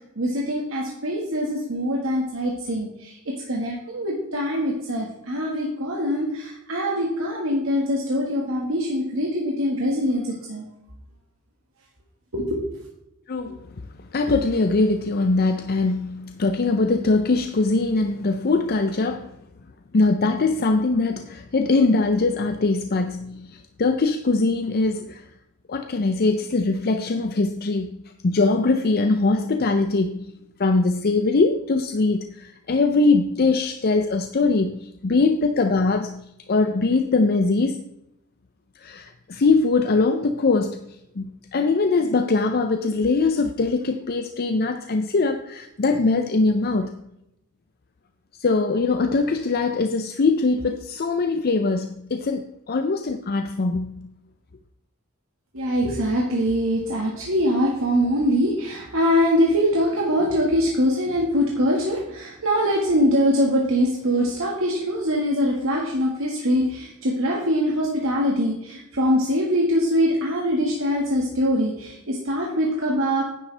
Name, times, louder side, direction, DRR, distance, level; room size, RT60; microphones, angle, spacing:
voice 1, 0.1-10.6 12.3-12.6 55.5-73.2, equal, 65° right, 1.7 m, -23 dB
voice 2, 13.3-13.7 14.1-19.3 19.9-25.2 25.7-28.0 28.2-30.3 30.6-36.2 36.5-37.8 38.8-40.8 41.2-47.0 48.4-54.1, left 3 dB, 45° left, 0.6 m, -22 dB
10.0 x 9.8 x 3.3 m
head